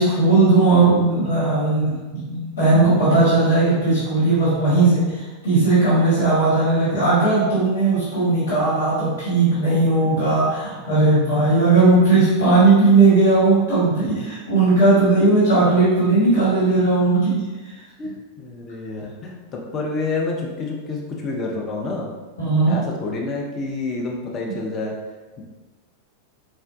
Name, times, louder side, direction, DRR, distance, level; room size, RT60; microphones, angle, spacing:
voice 1, 0.0-17.4 22.4-22.7, right 3 dB, 70° left, -10 dB, 1.5 m, -17 dB
voice 2, 18.0-22.1 22.4-25.0, left 3 dB, 30° left, -1 dB, 0.5 m, -29 dB
4.4 x 2.1 x 2.5 m, 1.2 s
figure-of-eight pair, 90°, 0 cm